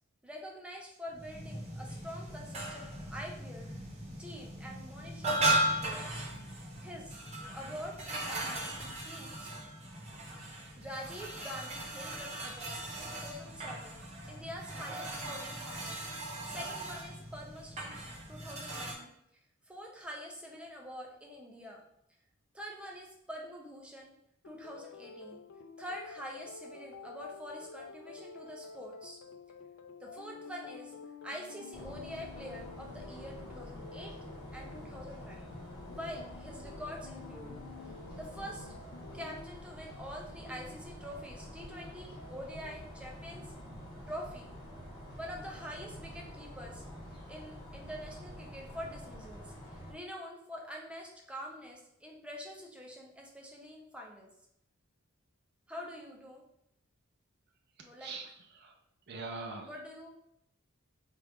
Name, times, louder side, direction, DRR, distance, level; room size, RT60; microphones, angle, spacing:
voice 1, 0.2-3.7 4.2-6.3 6.8-7.2 7.5-9.5 10.8-14.0 14.3-16.0 16.4-18.0 18.3-19.1 19.7-21.8 22.5-24.1 24.4-25.4 25.8-29.2 30.0-30.9 31.2-34.1 34.5-35.5 35.9-37.5 38.2-38.7 39.1-43.5 44.1-44.5 45.1-46.8 47.3-54.3 55.7-56.4 57.8-58.1 59.6-60.1, equal, 5° right, -1 dB, 0.6 m, -45 dB
sound 1, 1.1-18.9, right 1 dB, 30° right, 1.0 m, -37 dB
sound 2, 24.4-42.8, left 4 dB, 80° left, 0.4 m, -50 dB
sound 3, 31.7-49.9, equal, 25° left, 1.3 m, -47 dB
voice 2, 57.8-58.8 59.1-59.7, right 3 dB, 50° right, 1 dB, 0.5 m, -43 dB
4.4 x 2.5 x 3.4 m, 0.76 s
head